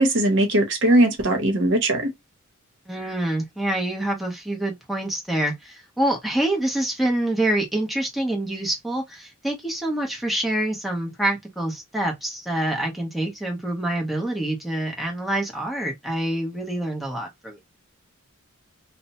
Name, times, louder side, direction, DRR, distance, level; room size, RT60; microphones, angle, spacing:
voice 1, 0.0-2.1, right 1 dB, 60° right, 0.8 m, -19 dB
voice 2, 2.9-17.6, right 1 dB, ahead, 0.8 m, -26 dB
2.8 x 2.0 x 2.7 m
head